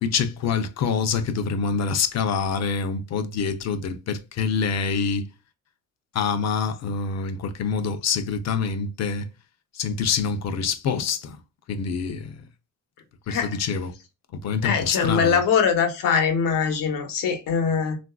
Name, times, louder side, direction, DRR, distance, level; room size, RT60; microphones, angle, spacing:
voice 1, 0.0-5.3 6.1-9.3 9.7-11.4 11.7-12.4 13.3-13.9 14.3-15.4, left 5 dB, 55° left, 0.5 m, -26 dB
voice 2, 13.3-13.6 14.6-18.0, left 6 dB, 85° left, 1.0 m, -22 dB
3.8 x 2.5 x 2.2 m
cardioid pair, 165°, 32 cm